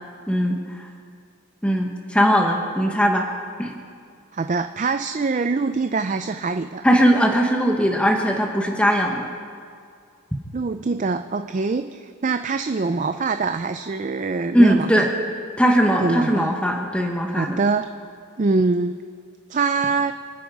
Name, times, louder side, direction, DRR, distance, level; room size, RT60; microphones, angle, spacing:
voice 1, 0.3-0.6 1.6-3.2 3.6-3.7 6.8-9.3 14.5-15.1 15.6-17.6, equal, 5° left, 1 dB, 1.2 m, -19 dB
voice 2, 4.3-6.8 10.5-15.1 16.0-16.6 17.3-17.9 18.4-19.0 19.5-20.1, right 4 dB, 35° right, 9 dB, 0.4 m, -24 dB
27.0 x 9.2 x 4.9 m, 2.3 s
head